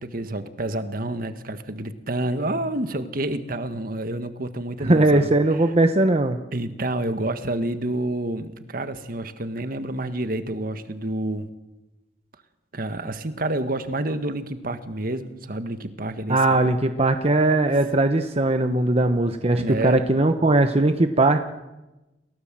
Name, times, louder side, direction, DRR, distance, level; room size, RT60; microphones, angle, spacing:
voice 1, 0.0-5.3 6.5-11.5 12.7-16.7 19.5-20.0, right 1 dB, 55° right, 9 dB, 1.7 m, -29 dB
voice 2, 4.8-6.4 16.3-21.4, right 2 dB, 35° right, 7 dB, 1.1 m, -19 dB
29.0 x 17.5 x 7.6 m, 1.0 s
head